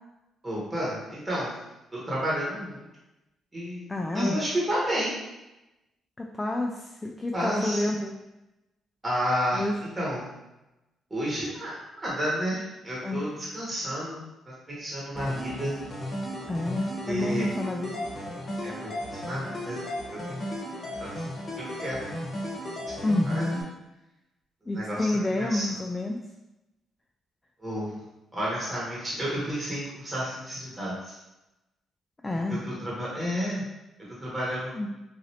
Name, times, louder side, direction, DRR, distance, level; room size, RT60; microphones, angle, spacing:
voice 1, 0.4-1.5 1.9-2.8 3.5-5.2 7.3-7.9 9.0-9.7 10.0-10.3 11.1-11.7 12.0-14.2 14.7-15.8 17.1-17.4 18.6-19.0 19.3-19.8 20.1-20.2 21.0-21.1 21.6-22.2 23.3-23.5 24.7-25.0 25.4-25.7 27.6-27.9 28.3-31.1 32.5-33.6 34.2-34.7, equal, 20° right, -6 dB, 1.1 m, -31 dB
voice 2, 3.9-4.4 6.2-8.2 9.5-9.7 13.0-13.3 16.5-17.9 23.0-23.7 24.7-26.2 32.2-32.6 34.7-34.9, left 2 dB, 20° left, 1 dB, 0.3 m, -29 dB
sound 1, 15.1-23.6, equal, 40° left, 0.9 m, -35 dB
3.1 x 2.5 x 2.8 m, 0.97 s
cardioid pair, 90°, 0 cm